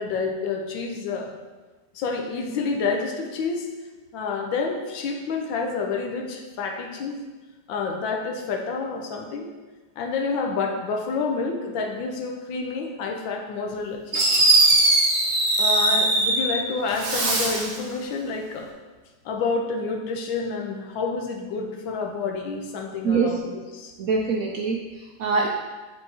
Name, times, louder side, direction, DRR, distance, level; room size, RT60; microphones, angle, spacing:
voice 1, 0.0-1.4 1.9-3.7 4.1-7.2 7.7-9.5 10.0-14.2 15.6-18.7 19.2-23.9, left 4 dB, 90° left, 2 dB, 1.5 m, -29 dB
Fireworks, 13.7-13.8 14.1-16.6 16.9-17.8, right 2 dB, 50° right, 1.3 m, -20 dB
voice 2, 23.0-23.4 24.0-25.5, right 4 dB, 75° right, 0 dB, 0.8 m, -24 dB
8.1 x 4.5 x 2.8 m, 1.3 s
omnidirectional pair, 2.0 m